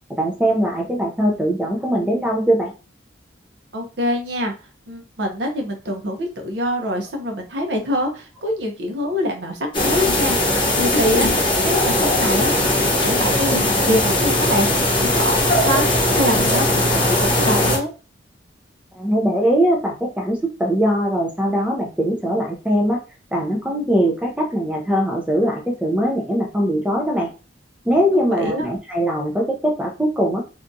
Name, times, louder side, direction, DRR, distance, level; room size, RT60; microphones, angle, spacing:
voice 1, 0.2-2.7 18.9-23.0 23.3-27.3 27.9-30.4, equal, 5° right, 1 dB, 0.4 m, -21 dB
voice 2, 3.7-4.5 4.9-17.9 28.1-28.7, left 1 dB, 70° right, 3 dB, 0.7 m, -25 dB
sound 1, 9.7-17.8, left 1 dB, 25° left, 0.8 m, -19 dB
2.7 x 2.3 x 2.6 m, 0.32 s
head